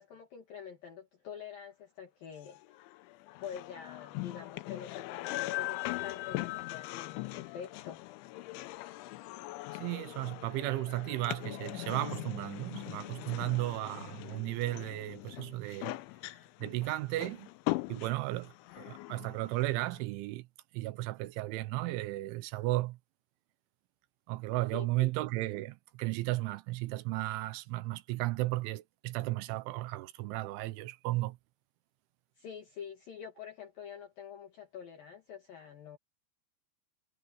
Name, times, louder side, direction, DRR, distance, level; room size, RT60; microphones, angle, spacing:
voice 1, 0.0-2.7 3.4-8.1 24.7-25.1 32.4-36.0, left 8 dB, 55° left, 3.1 m, -46 dB
sound 1, 2.5-20.0, left 19 dB, 80° left, 3.0 m, -41 dB
voice 2, 9.7-16.0 16.6-17.5 17.9-20.5 20.7-23.0 24.3-31.4, right 18 dB, 80° right, 3.0 m, -34 dB
omnidirectional pair, 5.7 m